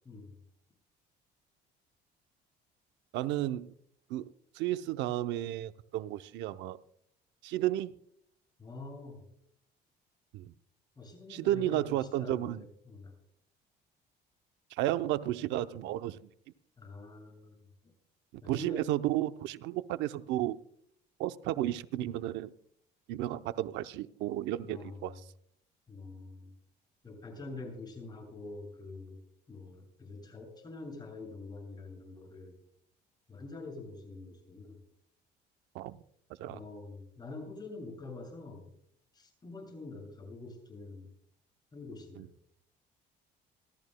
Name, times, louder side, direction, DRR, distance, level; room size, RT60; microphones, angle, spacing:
voice 1, 3.1-3.7 4.1-6.8 7.4-7.9 10.3-10.5 11.3-12.6 14.7-16.2 18.4-20.6 21.2-22.5 23.1-25.1 35.7-36.0 36.4-36.6 42.2-42.3, right 14 dB, 85° right, 12 dB, 0.6 m, -33 dB
voice 2, 8.6-9.2 11.0-13.1 16.8-17.6 18.4-18.9 24.6-25.2 25.9-26.5 27.0-29.2 29.5-32.5 33.3-34.8 36.5-38.7 39.1-41.1 41.7-42.3, left 3 dB, 20° left, 0 dB, 7.2 m, -45 dB
28.5 x 13.0 x 2.2 m, 0.67 s
cardioid pair, 120°, 18 cm